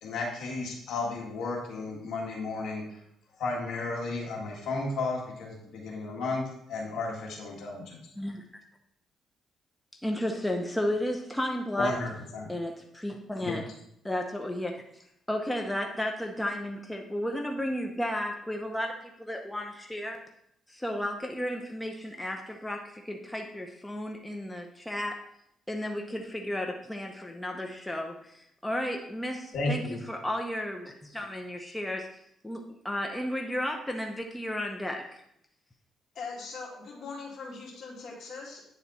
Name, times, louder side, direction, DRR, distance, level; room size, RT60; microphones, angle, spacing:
voice 1, 0.0-3.0 3.4-6.4 6.7-8.0 11.8-12.5 13.4-13.6 29.5-30.0, left 3 dB, 75° left, -1 dB, 1.8 m, -33 dB
voice 2, 10.0-11.9 12.5-13.6 14.0-14.8 15.3-20.2 20.7-25.2 25.7-29.8 30.1-32.1 32.4-35.1, left 1 dB, 10° left, 3 dB, 0.8 m, -33 dB
voice 3, 36.1-38.6, left 4 dB, 60° left, -2 dB, 2.5 m, -41 dB
9.4 x 4.1 x 4.1 m, 0.73 s
cardioid pair, 90°, 0 cm